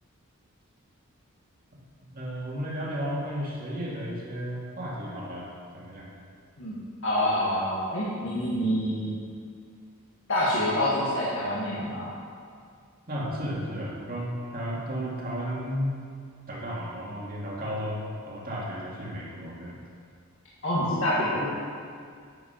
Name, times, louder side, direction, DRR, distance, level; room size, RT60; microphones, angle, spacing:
voice 1, 2.0-5.5 5.7-6.1 13.1-16.0 16.5-19.8, equal, 40° right, -4 dB, 2.3 m, -33 dB
voice 2, 7.0-9.1 10.3-12.1 20.6-21.5, left 1 dB, 60° left, -8 dB, 1.9 m, -26 dB
9.8 x 7.8 x 5.8 m, 2.1 s
head